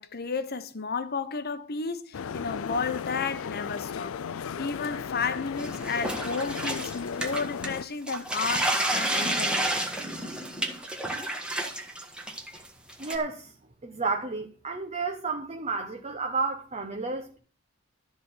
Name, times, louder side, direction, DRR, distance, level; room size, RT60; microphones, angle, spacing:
voice 1, 0.0-9.7, left 5 dB, 50° left, 1.0 m, -32 dB
sound 1, 2.1-7.8, left 7 dB, 75° left, 0.4 m, -35 dB
sound 2, 5.6-7.8 8.1-13.2, right 1 dB, 5° right, 1.5 m, -30 dB
voice 2, 13.0-13.5 13.8-17.4, right 4 dB, 35° right, 1.1 m, -31 dB
13.0 x 4.4 x 8.4 m
head